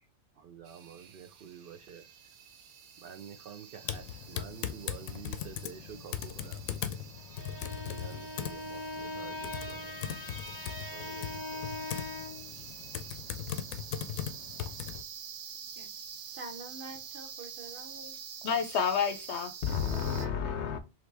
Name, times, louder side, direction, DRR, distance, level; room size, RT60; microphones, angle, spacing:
voice 1, 0.4-2.1 3.0-6.6 7.8-9.8 10.9-11.7, right 7 dB, 70° right, 0.5 m, -49 dB
sound 1, 0.7-20.3, right 8 dB, 85° right, 1.1 m, -47 dB
Typing, 3.8-15.0, left 9 dB, 85° left, 1.0 m, -39 dB
Bowed string instrument, 7.2-12.5, left 2 dB, 20° left, 0.6 m, -41 dB
voice 2, 16.3-18.2 19.9-20.7, right 2 dB, 45° right, 0.9 m, -47 dB
voice 3, 18.4-20.8, left 7 dB, 65° left, 0.7 m, -30 dB
5.6 x 2.8 x 3.3 m
omnidirectional pair, 1.4 m